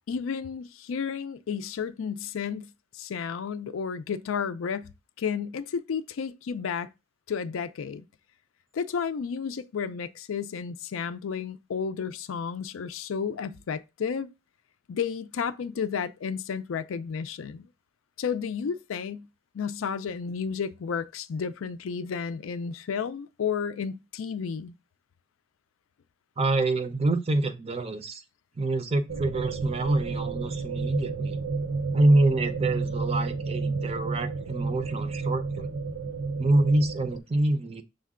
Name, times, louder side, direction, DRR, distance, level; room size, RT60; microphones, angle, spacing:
voice 1, 0.1-6.9 7.3-8.0 8.7-14.3 14.9-17.7 18.2-19.3 19.5-24.7, left 6 dB, 85° left, 0.4 m, -32 dB
voice 2, 26.4-28.2 28.6-31.4 31.9-35.7 36.4-37.8, right 2 dB, 30° right, 0.5 m, -26 dB
sound 1, 29.1-37.2, right 4 dB, 70° right, 0.7 m, -31 dB
6.2 x 2.2 x 3.6 m
head